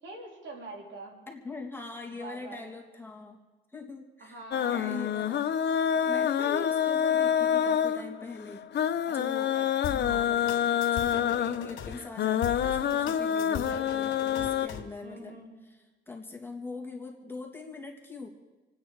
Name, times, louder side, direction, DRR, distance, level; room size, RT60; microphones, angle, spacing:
voice 1, 0.0-1.2 2.1-2.6 4.2-5.0 9.1-9.2 9.5-9.7 13.5-14.6 15.0-15.5, right 2 dB, 70° right, 0 dB, 4.0 m, -45 dB
voice 2, 1.3-3.4 3.7-5.5 5.7-9.5 9.9-18.3, left 3 dB, 10° left, 1 dB, 2.7 m, -42 dB
sound 1, 4.5-14.7, left 9 dB, 60° left, 0.9 m, -27 dB
sound 2, 9.8-11.9 12.4-14.9, left 8 dB, 85° left, 2.3 m, -39 dB
28.5 x 9.4 x 4.9 m, 1.2 s
cardioid pair, 90°, 20 cm